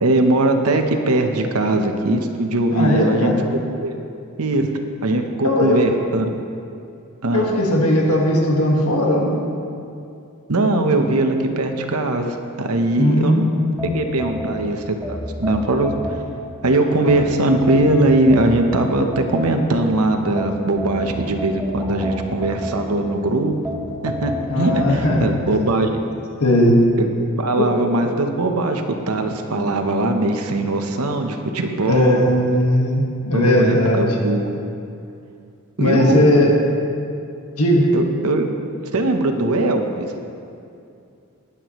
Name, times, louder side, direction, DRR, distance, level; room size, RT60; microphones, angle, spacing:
voice 1, 0.0-3.3 3.8-3.9 4.4-4.7 5.0-6.3 7.2-7.5 10.5-13.5 13.9-16.2 16.6-23.5 24.0-25.9 27.0-27.1 27.4-32.3 33.3-34.5 35.8-36.3 37.9-38.5 38.9-40.1, right 2 dB, 80° right, 5 dB, 1.0 m, -20 dB
voice 2, 2.7-3.4 5.4-5.8 7.3-9.4 13.0-13.6 24.5-25.4 26.4-26.8 27.6-27.7 31.9-34.0 35.8-36.6 37.6-37.9, left 1 dB, 75° left, -1 dB, 1.7 m, -18 dB
sound 1, 13.8-16.6 17.1-19.9 20.4-23.2 23.7-25.3, equal, ahead, 1.9 m, -30 dB
19.5 x 8.4 x 3.1 m, 2.5 s
head